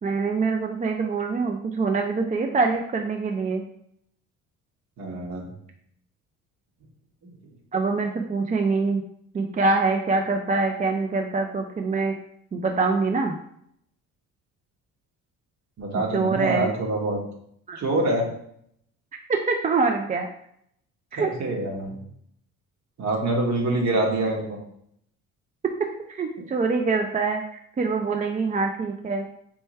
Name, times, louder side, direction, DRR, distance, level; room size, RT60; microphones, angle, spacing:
voice 1, 0.0-3.6 7.7-9.0 9.3-12.1 12.5-13.3 16.1-16.7 17.7-17.8 19.3-20.3 21.1-21.3 26.1-29.3, right 4 dB, 20° right, 3 dB, 0.4 m, -24 dB
voice 2, 5.0-5.5 15.8-17.2 17.7-18.3 21.2-22.0 23.0-24.6, right 2 dB, 50° right, 0 dB, 1.5 m, -25 dB
4.5 x 3.2 x 3.2 m, 0.71 s
supercardioid pair, 70°, 36 cm